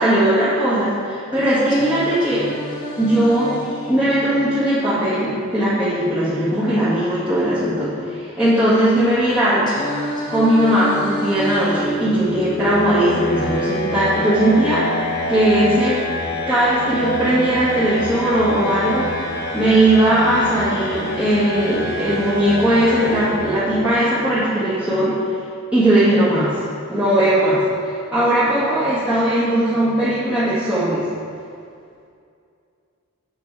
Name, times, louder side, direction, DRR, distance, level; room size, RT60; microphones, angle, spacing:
voice 1, 0.0-2.5 3.0-3.5 3.9-9.7 10.3-14.9 15.3-16.0 16.5-19.1 19.5-25.2 25.7-26.6 26.9-31.0, right 1 dB, 5° right, -14 dB, 1.8 m, -18 dB
Singing, 1.7-5.7 9.7-13.7, equal, 20° left, 1.1 m, -30 dB
sound 1, 11.4-24.2, left 1 dB, 50° left, 0.8 m, -27 dB
8.2 x 6.2 x 4.8 m, 2.4 s
head